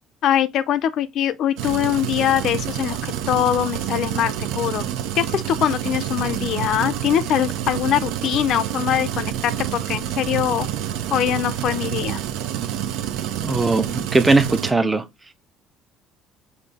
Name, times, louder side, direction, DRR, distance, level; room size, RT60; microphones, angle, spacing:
voice 1, 0.2-4.9 5.2-10.7 11.1-12.2, left 11 dB, 55° left, 0.5 m, -22 dB
sound 1, 1.6-14.7, right 11 dB, 90° right, 0.6 m, -28 dB
voice 2, 13.4-15.1, right 3 dB, 15° right, 0.5 m, -19 dB
5.7 x 2.7 x 3.4 m
cardioid pair, 155°, 0 cm